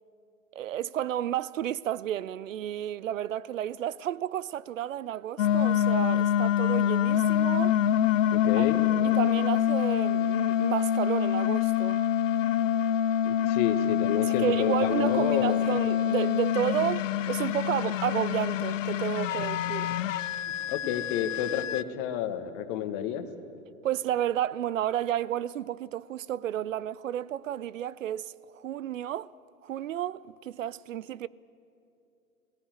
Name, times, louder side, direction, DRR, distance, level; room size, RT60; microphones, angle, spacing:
voice 1, 0.5-7.8 8.5-8.7 9.0-12.0 14.2-19.9 23.8-29.3 29.6-31.3, right 11 dB, 65° right, 0.6 m, -31 dB
sound 1, 5.4-21.8, left 10 dB, 60° left, 0.7 m, -26 dB
voice 2, 8.3-8.8 13.2-15.6 20.5-23.3, left 10 dB, 35° left, 1.5 m, -30 dB
17.5 x 17.0 x 9.6 m
figure-of-eight pair, 105°, 42 cm